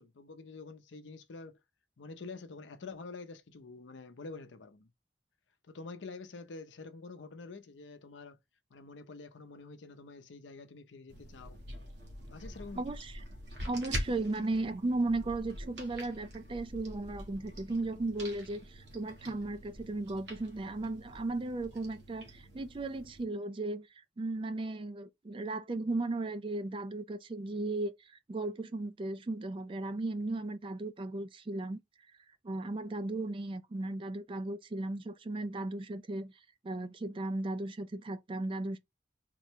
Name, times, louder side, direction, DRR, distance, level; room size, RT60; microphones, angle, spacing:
voice 1, 0.0-1.6 2.0-4.9 5.7-8.4 8.7-11.6 12.3-12.9, left 3 dB, 85° left, 0.6 m, -47 dB
sound 1, 11.1-23.2, equal, 70° right, 1.3 m, -45 dB
voice 2, 12.7-13.2 13.7-23.9 24.2-31.8 32.4-36.3 36.6-38.8, right 2 dB, 30° right, 0.3 m, -36 dB
3.7 x 2.1 x 4.4 m
head